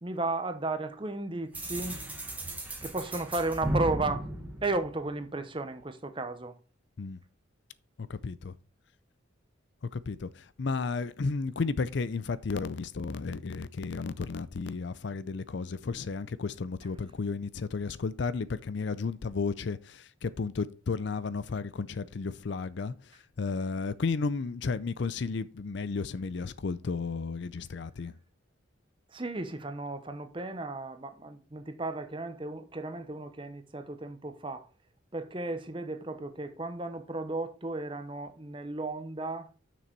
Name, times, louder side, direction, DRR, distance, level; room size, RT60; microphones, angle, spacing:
voice 1, 0.0-2.0 2.8-4.3 4.6-6.6 29.1-34.7 35.1-39.6, right 2 dB, 25° right, 0.8 m, -34 dB
sound 1, 1.5-5.4, right 1 dB, 10° right, 1.5 m, -35 dB
voice 2, 8.0-8.5 9.9-28.1, left 4 dB, 60° left, 0.5 m, -33 dB
6.7 x 6.3 x 4.5 m
head